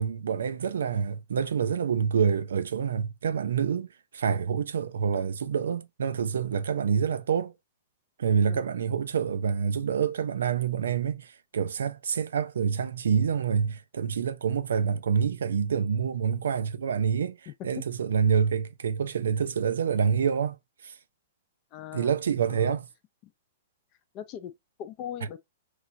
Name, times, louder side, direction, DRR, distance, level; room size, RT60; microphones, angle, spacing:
voice 1, 0.0-3.9 4.1-7.5 8.2-17.4 17.6-20.6 20.8-21.0 21.9-22.9, right 7 dB, 70° right, 0.3 m, -27 dB
voice 2, 17.5-17.8 21.7-22.1 22.5-22.8 24.1-24.5 24.8-25.4, left 10 dB, 40° left, 0.5 m, -39 dB
3.0 x 2.4 x 2.5 m
figure-of-eight pair, 110°, 0 cm